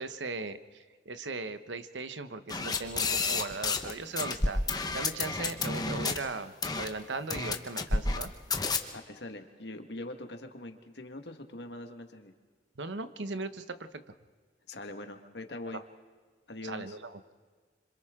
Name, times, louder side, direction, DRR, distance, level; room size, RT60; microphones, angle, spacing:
voice 1, 0.0-4.6 4.9-8.3 12.8-14.1 15.7-15.8 16.6-17.2, right 3 dB, 90° right, 11 dB, 1.0 m, -38 dB
sound 1, 2.5-6.2 6.6-6.9 7.3-8.2 8.5-8.8, left 3 dB, 20° left, 1.1 m, -30 dB
voice 2, 8.9-12.3 14.7-15.8 16.5-17.0, left 2 dB, 70° left, 6 dB, 1.6 m, -42 dB
26.5 x 26.0 x 3.7 m, 1.5 s
head